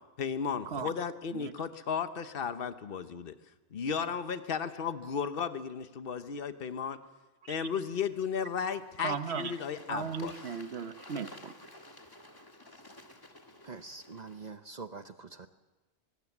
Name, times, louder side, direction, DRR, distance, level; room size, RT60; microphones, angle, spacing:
voice 1, 0.2-3.3 3.7-7.0 7.5-10.3, left 6 dB, 60° left, 10 dB, 1.2 m, -34 dB
Bird / Water, 7.8-14.5, left 1 dB, 20° left, 1.7 m, -53 dB
voice 2, 9.0-9.5 9.9-11.5, right 6 dB, 75° right, 11 dB, 1.2 m, -36 dB
voice 3, 13.6-15.5, right 4 dB, 45° right, 9 dB, 0.9 m, -45 dB
23.5 x 19.0 x 7.3 m, 1.2 s
omnidirectional pair, 1.1 m